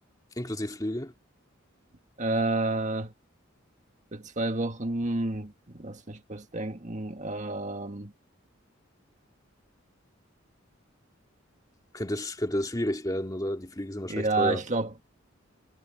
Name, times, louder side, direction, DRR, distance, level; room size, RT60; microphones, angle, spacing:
voice 1, 0.4-1.1 11.9-14.6, left 1 dB, 20° left, 2.2 m, -31 dB
voice 2, 2.2-3.1 4.1-8.1 14.1-15.0, right 2 dB, 35° right, 1.8 m, -30 dB
head